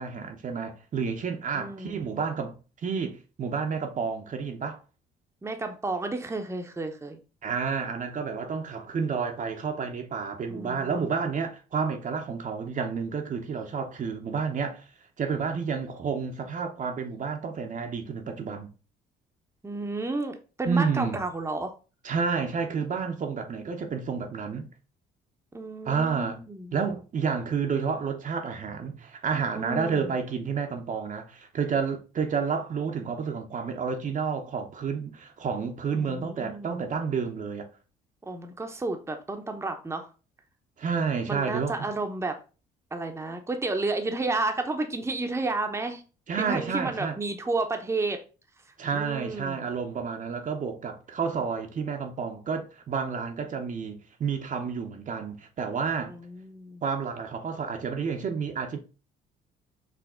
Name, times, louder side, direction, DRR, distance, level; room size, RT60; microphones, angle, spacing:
voice 1, 0.0-2.5 2.8-4.8 7.4-14.8 15.2-18.7 20.6-21.2 22.0-24.7 25.8-26.4 26.7-37.7 40.8-41.8 46.3-47.2 48.8-56.1 56.8-58.8, right 5 dB, 45° right, 0.8 m, -30 dB
voice 2, 1.5-2.0 5.4-7.2 10.5-10.9 19.6-21.7 25.5-26.7 29.5-30.2 35.9-36.9 38.2-40.1 41.3-42.4 42.9-46.0 46.4-48.2 48.9-49.6 56.1-56.8, right 3 dB, 15° right, 0.8 m, -32 dB
5.0 x 2.8 x 3.7 m
supercardioid pair, 80°, 18 cm